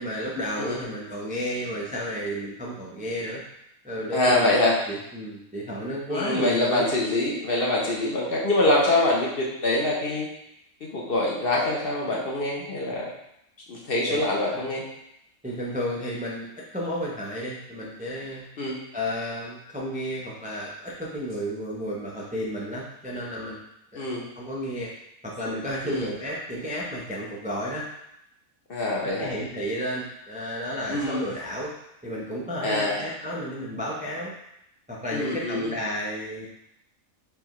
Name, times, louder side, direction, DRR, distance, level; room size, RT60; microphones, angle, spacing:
voice 1, 0.0-3.4 3.8-4.5 4.9-6.9 14.1-14.2 14.5-14.7 15.4-18.5 18.9-23.6 23.9-24.1 24.3-24.9 25.2-27.9 29.0-31.7 32.0-34.3 34.9-36.5, equal, 10° right, -4 dB, 0.3 m, -32 dB
voice 2, 4.1-4.7 6.1-10.3 10.9-13.1 13.7-14.8 18.6-18.8 24.0-24.2 25.8-26.1 28.7-29.3 30.9-31.3 32.6-33.0 35.1-35.7, left 1 dB, 50° left, -3 dB, 0.8 m, -24 dB
4.8 x 3.4 x 2.9 m, 0.81 s
omnidirectional pair, 1.4 m